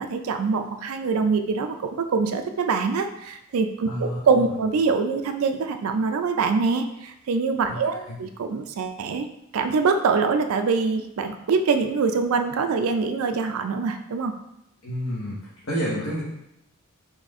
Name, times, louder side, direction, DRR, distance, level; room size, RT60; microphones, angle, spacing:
voice 1, 0.0-9.3 9.5-14.3, right 4 dB, 75° right, 7 dB, 0.4 m, -24 dB
voice 2, 3.9-4.4 7.7-8.2 14.8-16.2, equal, 65° left, -7 dB, 1.0 m, -30 dB
4.1 x 3.2 x 3.6 m, 0.83 s
head